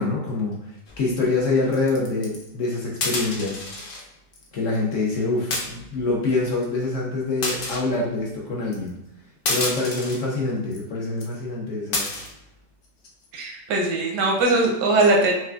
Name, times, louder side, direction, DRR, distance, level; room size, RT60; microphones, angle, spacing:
voice 1, 0.0-3.7 4.5-8.9 9.5-12.1, left 3 dB, 60° left, -3 dB, 0.9 m, -25 dB
sound 1, 0.9-1.1 1.7-2.5 3.0-4.0 4.3-4.5 4.7-4.9 5.5-6.0 6.6-6.7 7.4-7.8 8.7-8.9 9.5-10.2 10.7-10.8 11.2-11.3 11.9-12.3 12.8-13.2, left 2 dB, 85° left, 0.4 m, -29 dB
voice 2, 13.3-15.3, right 2 dB, 85° right, 0 dB, 1.3 m, -20 dB
5.7 x 2.3 x 2.3 m, 0.82 s
omnidirectional pair, 1.8 m